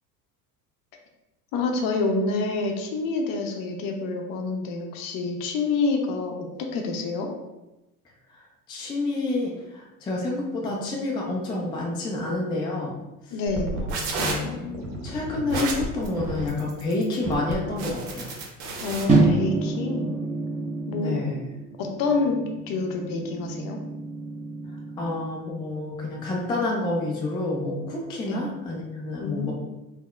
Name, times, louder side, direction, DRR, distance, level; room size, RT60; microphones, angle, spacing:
voice 1, 1.5-6.3 6.7-7.3 13.3-13.8 18.8-20.2 20.9-21.1 21.8-23.8 28.2-28.4 29.2-29.5, left 3 dB, 45° left, 2 dB, 0.6 m, -27 dB
voice 2, 8.7-13.0 13.9-14.7 15.0-18.3 20.9-21.4 25.0-29.5, left 2 dB, 10° left, -2 dB, 0.3 m, -29 dB
sound 1, 13.5-19.0, right 2 dB, 65° right, 0.8 m, -31 dB
sound 2, 19.1-25.3, right 2 dB, 15° right, 0.9 m, -27 dB
3.5 x 2.0 x 2.3 m, 1.0 s
hypercardioid pair, 70°, 47 cm